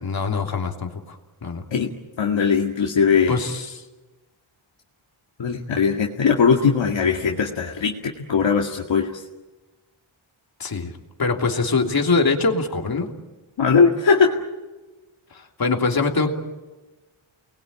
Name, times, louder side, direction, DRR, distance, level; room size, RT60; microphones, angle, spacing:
voice 1, 0.0-1.6 3.3-3.8 10.6-10.9 11.2-13.1 15.3-16.3, left 4 dB, 45° left, 3 dB, 3.2 m, -23 dB
voice 2, 2.2-3.4 5.4-9.2 13.6-14.4, left 6 dB, 65° left, 0 dB, 2.2 m, -20 dB
29.5 x 21.0 x 8.9 m, 1.2 s
wide cardioid pair, 115°, 49 cm